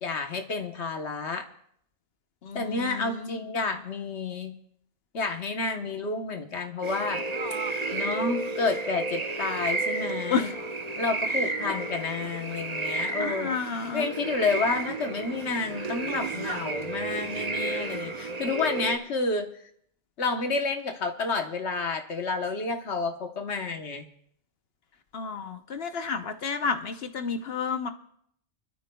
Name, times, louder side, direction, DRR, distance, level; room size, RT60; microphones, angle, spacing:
voice 1, 0.0-1.5 2.5-4.5 5.1-7.2 7.9-10.5 11.0-13.6 13.9-19.5 20.2-24.1, left 3 dB, 80° left, 5 dB, 1.4 m, -30 dB
voice 2, 2.4-3.4 10.3-10.5 13.2-14.1 25.1-27.9, left 5 dB, 65° left, 8 dB, 1.0 m, -31 dB
sound 1, 6.8-19.0, right 3 dB, 40° right, 1.0 m, -32 dB
25.5 x 13.0 x 2.3 m, 0.68 s
omnidirectional pair, 1.1 m